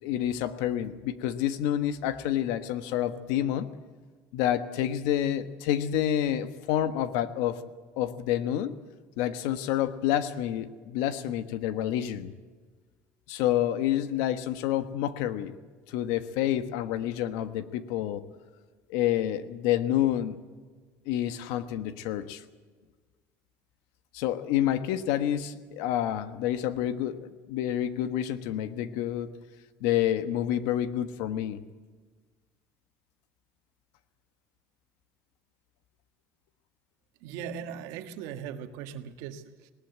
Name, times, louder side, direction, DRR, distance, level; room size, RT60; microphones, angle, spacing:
voice 1, 0.0-3.7 4.3-7.6 8.0-8.7 9.2-12.3 13.3-15.6 15.9-18.2 18.9-20.4 21.0-22.4 24.1-29.3 29.8-31.6, left 11 dB, 80° left, 11 dB, 1.4 m, -28 dB
voice 2, 37.2-39.7, right 8 dB, 70° right, 8 dB, 1.6 m, -39 dB
19.5 x 18.5 x 8.1 m, 1.4 s
cardioid pair, 175°, 6 cm